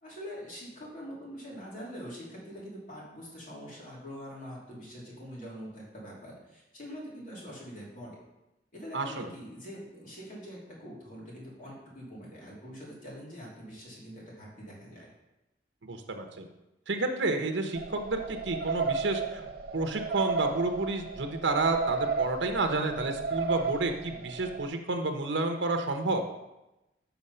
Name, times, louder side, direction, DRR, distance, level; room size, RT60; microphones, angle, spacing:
voice 1, 0.0-8.2 8.7-15.1, equal, 45° left, -5 dB, 3.0 m, -44 dB
voice 2, 8.9-9.3 15.8-16.5 16.9-19.4 19.7-26.2, right 2 dB, 85° right, 5 dB, 0.9 m, -30 dB
sound 1, 17.8-24.7, right 5 dB, 55° right, 0.6 m, -33 dB
7.1 x 5.7 x 5.5 m, 0.96 s
head